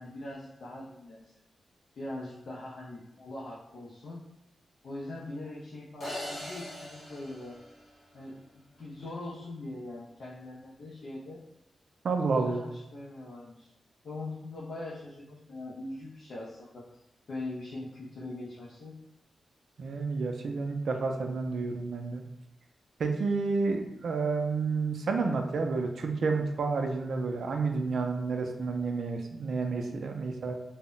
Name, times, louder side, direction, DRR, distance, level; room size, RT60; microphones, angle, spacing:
voice 1, 0.0-1.3 2.0-4.2 4.8-7.6 8.1-11.4 12.3-13.7 14.0-19.0, left 2 dB, 70° left, -5 dB, 0.4 m, -42 dB
sound 1, 6.0-8.3, left 1 dB, 50° left, 0.9 m, -41 dB
voice 2, 12.0-12.6 19.8-22.2 23.0-30.5, right 4 dB, 70° right, 4 dB, 0.3 m, -30 dB
2.1 x 2.0 x 3.7 m, 0.88 s
wide cardioid pair, 135°, 0 cm